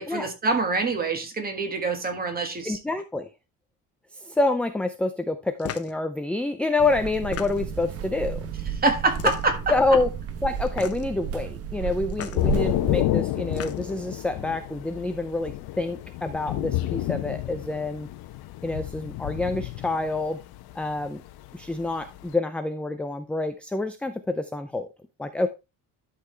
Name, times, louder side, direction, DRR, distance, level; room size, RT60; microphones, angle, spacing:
voice 1, 0.0-2.8 8.8-9.6, right 3 dB, 25° right, 1.7 m, -25 dB
voice 2, 2.6-3.3 4.2-8.4 9.7-10.1 10.4-18.1 18.6-20.4 20.8-21.2 21.5-24.9 25.2-25.5, left 2 dB, 5° left, 0.4 m, -27 dB
sound 1, 5.6-6.0 7.1-7.8 9.1-9.7 10.7-11.2 12.1-12.4 13.3-14.0, left 9 dB, 40° left, 0.9 m, -36 dB
sound 2, 6.8-13.0, right 7 dB, 40° right, 1.0 m, -33 dB
Thunder / Rain, 12.4-22.3, left 15 dB, 80° left, 1.0 m, -30 dB
11.5 x 5.8 x 3.3 m
cardioid pair, 165°, 37 cm